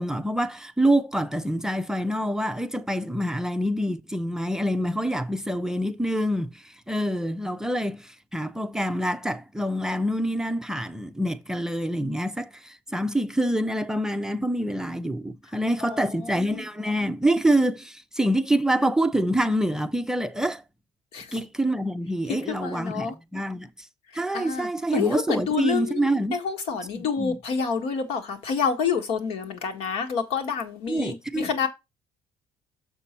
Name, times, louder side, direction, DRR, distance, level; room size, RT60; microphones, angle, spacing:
voice 1, 0.0-20.6 21.3-23.9 24.1-26.4 26.9-27.4 30.9-31.5, right 1 dB, 5° right, 0.5 m, -26 dB
voice 2, 15.8-16.6 21.1-21.4 22.3-23.1 24.3-31.7, left 6 dB, 75° left, 1.6 m, -28 dB
6.7 x 5.5 x 4.4 m
cardioid pair, 135°, 10 cm